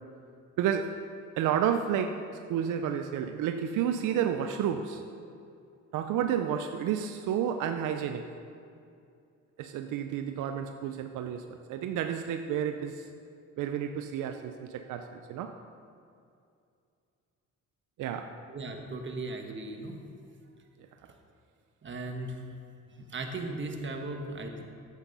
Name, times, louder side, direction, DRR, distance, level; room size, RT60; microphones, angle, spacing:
voice 1, 0.6-1.0 1.4-5.0 5.9-8.3 9.6-13.1 13.6-15.6 18.0-18.4, right 9 dB, 85° right, 7 dB, 0.6 m, -31 dB
voice 2, 18.5-20.0 21.8-22.4 23.0-24.6, right 2 dB, 40° right, 3 dB, 1.4 m, -37 dB
10.0 x 8.2 x 5.5 m, 2.5 s
cardioid pair, 90°, 30 cm